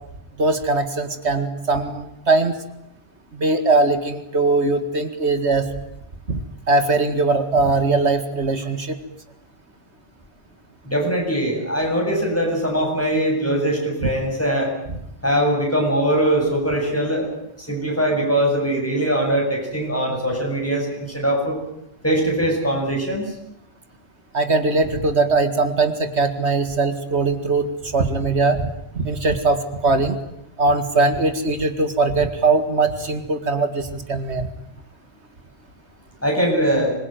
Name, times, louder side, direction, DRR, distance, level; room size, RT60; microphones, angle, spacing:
voice 1, 0.4-2.6 3.3-5.7 6.3-6.4 6.7-9.0 24.3-30.2 30.6-34.5, right 3 dB, 80° right, 8 dB, 2.3 m, -20 dB
voice 2, 10.8-14.7 15.2-17.3 17.6-21.6 22.0-23.3 36.2-36.9, right 1 dB, 10° left, 0 dB, 8.0 m, -21 dB
25.5 x 22.0 x 9.3 m, 0.80 s
omnidirectional pair, 1.1 m